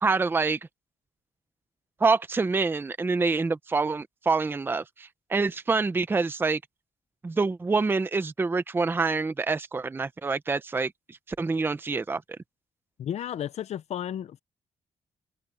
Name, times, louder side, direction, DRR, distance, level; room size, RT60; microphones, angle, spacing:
voice 1, 0.0-0.6 2.0-6.6 7.2-12.2, right 4 dB, 15° right, 0.6 m, -26 dB
voice 2, 13.0-14.4, left 10 dB, 60° left, 0.5 m, -33 dB
wide cardioid pair, 170°, 13 cm